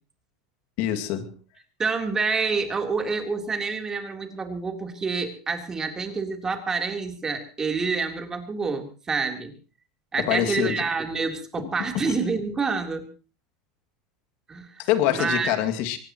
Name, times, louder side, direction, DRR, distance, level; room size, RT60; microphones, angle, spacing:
voice 1, 0.8-1.3 10.3-10.8 12.0-12.1 14.8-16.0, left 11 dB, 60° left, 6 dB, 2.3 m, -25 dB
voice 2, 1.8-9.5 10.1-13.1 14.5-15.6, right 4 dB, 20° right, 4 dB, 3.5 m, -28 dB
23.5 x 19.0 x 3.1 m, 0.35 s
supercardioid pair, 110°, 3 cm